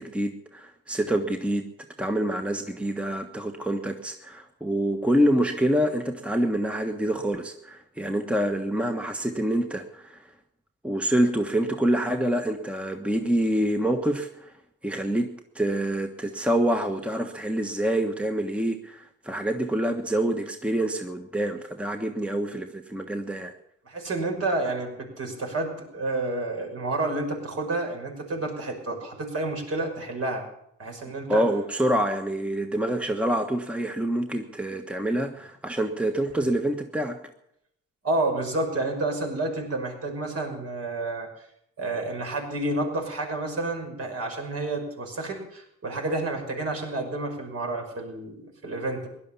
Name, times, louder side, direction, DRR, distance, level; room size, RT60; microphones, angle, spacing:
voice 1, 0.0-1.7 2.0-10.2 10.8-14.5 14.8-23.5 31.3-37.2, right 1 dB, 5° right, 5 dB, 1.3 m, -26 dB
voice 2, 23.9-30.4 30.8-31.4 38.0-41.3 41.8-49.1, right 2 dB, 50° right, 2 dB, 5.5 m, -30 dB
16.5 x 11.5 x 7.0 m, 0.77 s
cardioid pair, 90°, 30 cm